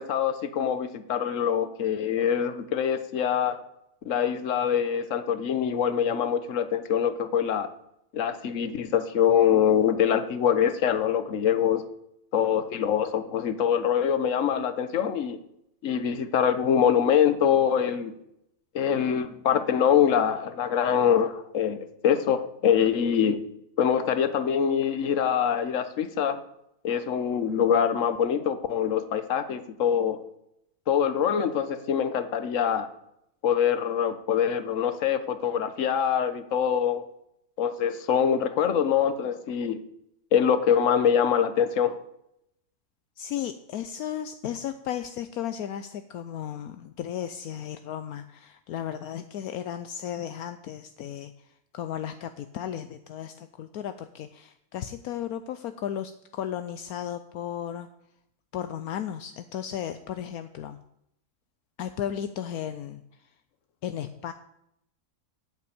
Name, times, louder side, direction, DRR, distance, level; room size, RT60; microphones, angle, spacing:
voice 1, 0.0-3.6 4.0-7.7 8.1-11.8 12.3-15.4 15.8-18.1 18.7-23.4 23.8-26.4 26.8-30.2 30.9-32.9 33.4-37.0 37.6-39.8 40.3-41.9, left 8 dB, 55° left, 11 dB, 1.3 m, -24 dB
voice 2, 43.2-57.9 58.5-60.8 61.8-63.3 63.8-64.3, left 10 dB, 75° left, 10 dB, 1.1 m, -35 dB
9.6 x 8.5 x 8.6 m, 0.79 s
omnidirectional pair, 1.6 m